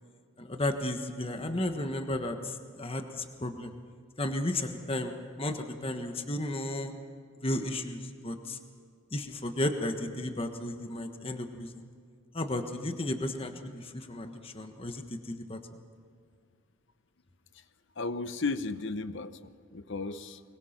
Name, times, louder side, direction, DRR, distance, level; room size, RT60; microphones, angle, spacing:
voice 1, 0.4-3.7 4.2-6.9 7.4-8.6 9.1-11.8 12.3-15.6, left 1 dB, 25° left, 6 dB, 1.3 m, -34 dB
voice 2, 18.0-20.4, left 3 dB, 55° left, 12 dB, 0.9 m, -35 dB
24.0 x 22.5 x 5.9 m, 2.1 s
head